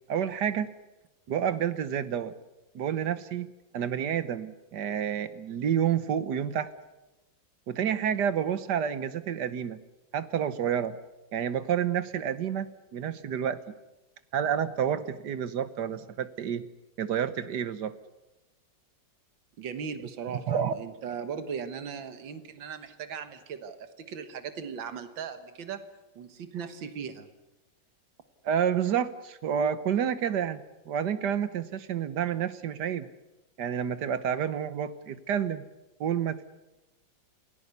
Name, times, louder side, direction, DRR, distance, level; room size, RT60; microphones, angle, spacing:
voice 1, 0.1-0.7 1.3-2.3 2.8-3.5 3.7-6.7 7.7-9.8 10.1-11.0 11.3-13.7 14.3-16.7 17.0-18.0 20.5-20.7 28.4-33.1 33.6-35.7 36.0-36.5, right 8 dB, 65° right, 13 dB, 1.6 m, -29 dB
voice 2, 19.6-25.8 26.2-27.3, right 6 dB, 85° right, 10 dB, 2.1 m, -38 dB
28.5 x 17.0 x 8.2 m, 1.0 s
omnidirectional pair, 2.0 m